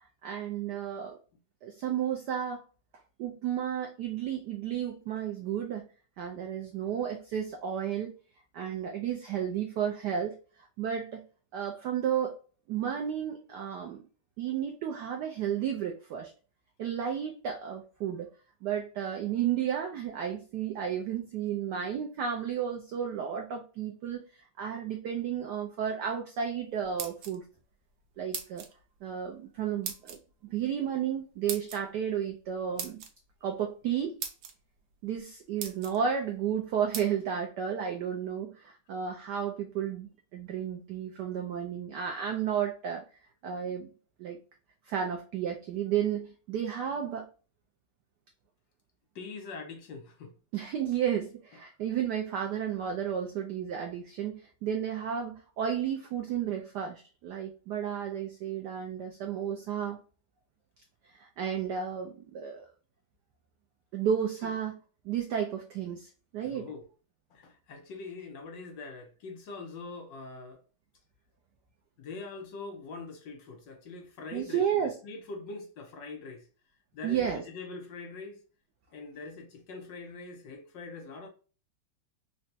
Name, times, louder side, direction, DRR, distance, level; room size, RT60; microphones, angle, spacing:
voice 1, 0.2-1.2 1.6-2.6 3.2-5.9 6.2-8.1 8.5-10.4 10.8-11.2 11.5-12.4 12.7-14.0 14.4-16.3 16.8-18.3 18.6-27.4 28.2-28.6 29.0-33.0 33.4-34.2 35.0-43.0 43.4-43.9 44.2-44.4 44.9-47.3 50.5-60.0 61.1-62.7 63.9-64.8 65.0-66.7 74.3-74.9 77.0-77.4, right 8 dB, 90° right, 0.9 m, -32 dB
sound 1, 26.8-27.6 28.3-28.7 29.8-30.2 31.5-31.8 32.8-33.1 33.8-33.9 34.2-34.5 35.1-35.2 35.6-36.0 36.9-37.1, right 7 dB, 70° right, 1.4 m, -38 dB
voice 2, 49.1-50.3 64.4-64.5 66.4-66.8 67.3-70.6 72.0-76.5 76.9-78.4 78.9-81.3, left 3 dB, 70° left, 1.2 m, -43 dB
4.0 x 2.2 x 2.6 m
omnidirectional pair, 2.4 m